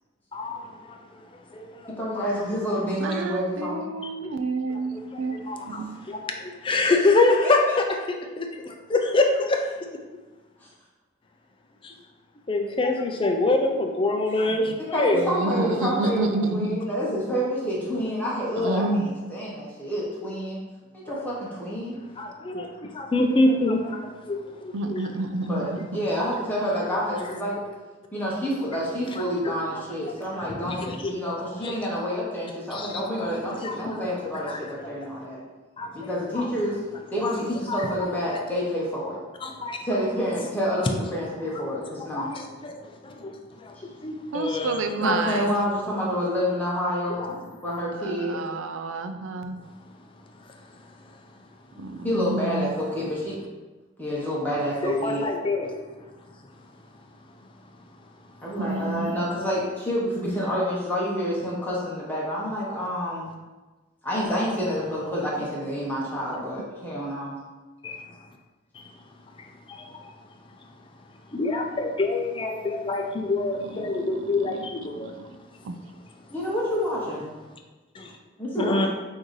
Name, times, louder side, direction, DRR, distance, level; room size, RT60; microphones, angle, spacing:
voice 1, 2.0-3.8 6.9-7.0 7.4-7.8 14.9-20.6 20.9-22.0 25.5-27.6 28.1-35.4 35.9-36.8 37.1-39.2 39.8-42.3 45.0-48.4 52.0-53.4 54.0-55.3 58.4-63.3 64.0-67.3 76.3-77.2 78.4-78.9, equal, 10° left, -6 dB, 0.8 m, -28 dB
voice 2, 3.0-6.1 14.5-14.8 15.1-16.8 18.6-19.1 24.7-25.9 44.3-45.5 47.9-49.6 51.8-52.7 58.5-59.3 65.4-65.5 73.6-74.7 74.9-75.2 75.6-75.8, right 3 dB, 70° right, 8 dB, 0.4 m, -30 dB
voice 3, 6.1-8.5 8.9-9.6 12.5-15.2 21.1-21.2 22.2-22.7 22.9-24.0 24.3-25.0 29.5-29.6 30.4-31.1 31.6-31.7 32.7-32.9 33.6-34.0 34.5-34.6 34.8-34.9 35.8-35.9 36.4-36.5 37.7-37.8 39.4-39.8 42.1-42.8 43.0-43.3 43.6-43.7 44.0-45.3 47.2-47.3 54.8-55.8 67.8-68.0 69.7-69.8 71.3-75.1 78.0-78.1 78.6-78.9, left 2 dB, 25° left, 3 dB, 0.4 m, -25 dB
6.0 x 2.6 x 3.1 m, 1.2 s
head